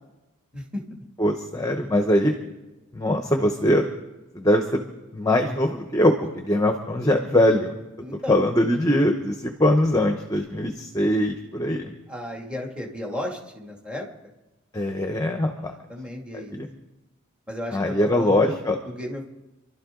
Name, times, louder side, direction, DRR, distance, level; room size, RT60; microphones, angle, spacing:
voice 1, 0.5-0.8 8.0-8.4 12.1-14.1 15.6-16.6 17.5-18.5 18.8-19.3, left 1 dB, 5° right, -1 dB, 2.4 m, -34 dB
voice 2, 1.2-2.3 2.9-3.9 4.3-4.8 5.1-7.8 8.3-11.9 14.7-15.7 16.3-16.7 17.7-18.8, left 1 dB, 15° left, 4 dB, 1.0 m, -22 dB
27.5 x 12.5 x 3.9 m, 1.1 s
head